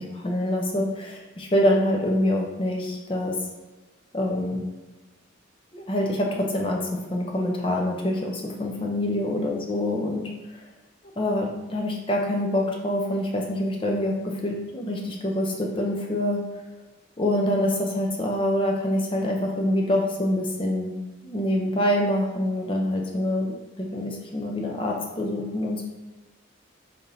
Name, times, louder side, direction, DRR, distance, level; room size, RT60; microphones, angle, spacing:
voice 1, 0.0-3.3 4.1-4.6 5.7-10.3 11.2-16.4 17.2-21.0 21.2-25.9, left 1 dB, 25° left, 0 dB, 0.5 m, -25 dB
3.5 x 2.7 x 3.8 m, 1.2 s
head